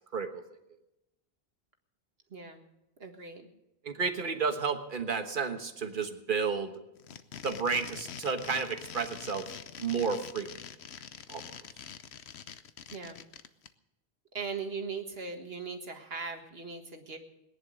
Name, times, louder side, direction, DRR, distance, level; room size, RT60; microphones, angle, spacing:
voice 1, 2.3-2.6 3.0-3.4 4.0-4.4 12.9-13.2 14.3-17.2, right 5 dB, 70° right, 5 dB, 1.9 m, -39 dB
voice 2, 3.8-6.7 7.4-9.5 9.8-10.5 11.3-11.6, right 5 dB, 55° right, 7 dB, 1.5 m, -32 dB
sound 1, 6.9-13.7, left 8 dB, 85° left, 1.1 m, -45 dB
19.5 x 10.5 x 6.4 m, 0.91 s
omnidirectional pair, 1.1 m